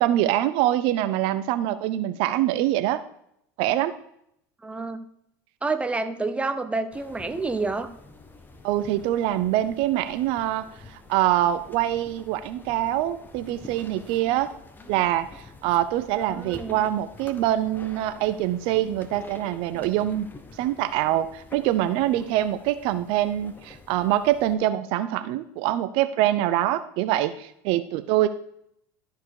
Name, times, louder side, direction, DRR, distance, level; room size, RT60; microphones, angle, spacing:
voice 1, 0.0-3.0 3.6-3.9 8.6-14.5 14.9-20.3 20.6-28.3, right 13 dB, 65° right, 12 dB, 0.6 m, -24 dB
voice 2, 4.6-5.0 5.6-7.9 16.1-16.8, right 3 dB, 10° right, 8 dB, 1.0 m, -29 dB
sound 1, 6.9-24.6, left 3 dB, 20° left, 1.3 m, -47 dB
13.0 x 4.7 x 4.8 m, 0.72 s
hypercardioid pair, 90°, 10 cm